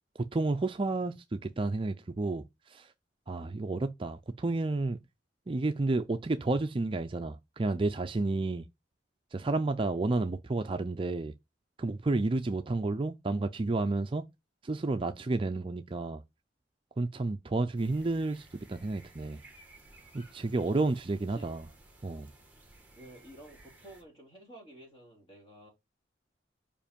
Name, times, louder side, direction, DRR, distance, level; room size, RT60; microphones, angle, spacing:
voice 1, 0.3-2.9 3.3-5.0 5.5-8.7 9.3-11.3 11.8-14.2 14.6-16.2 17.0-19.4 20.1-21.6 22.0-22.3, right 2 dB, 30° right, 0.4 m, -31 dB
sound 1, 17.8-24.0, right 2 dB, 10° right, 1.6 m, -57 dB
voice 2, 23.0-25.7, right 1 dB, 30° left, 3.5 m, -52 dB
5.2 x 5.1 x 5.1 m
head